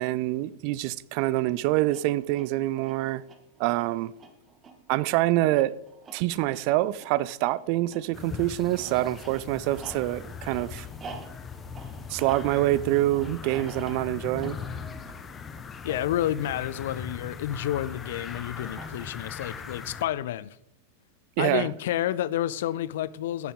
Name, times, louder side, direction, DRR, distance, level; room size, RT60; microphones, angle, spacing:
voice 1, 0.0-3.2 3.6-4.1 4.9-5.8 6.1-10.9 12.1-14.6 21.4-21.7, right 16 dB, 45° right, 0.4 m, -26 dB
sound 1, 1.9-17.6 18.6-19.4, right 4 dB, 25° right, 1.4 m, -48 dB
sound 2, 8.1-20.0, left 6 dB, 20° left, 0.9 m, -39 dB
voice 2, 15.8-20.6 21.4-23.5, left 12 dB, 55° left, 0.4 m, -30 dB
14.5 x 8.2 x 3.7 m
figure-of-eight pair, 90°, 0 cm